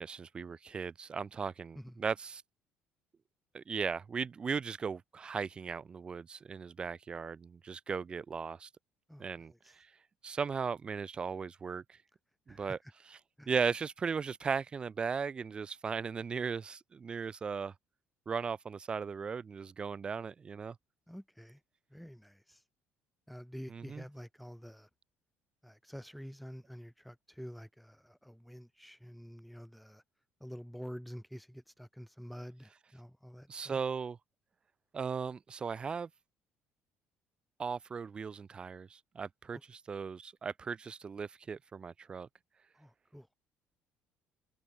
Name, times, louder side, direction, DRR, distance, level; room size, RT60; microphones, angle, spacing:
voice 1, 0.0-2.4 3.5-8.7 9.2-9.9 10.2-12.0 12.5-12.8 13.5-17.7 18.3-20.8 23.7-24.0 33.5-34.2 34.9-36.1 37.6-42.3, right 5 dB, 25° right, 0.5 m, -37 dB
voice 2, 9.1-9.7 12.5-12.8 13.4-13.5 21.1-21.6 21.9-22.6 23.3-24.9 25.6-30.0 30.4-33.8 39.5-39.6 42.7-43.3, equal, ahead, 6.6 m, -48 dB
cardioid pair, 155°, 4 cm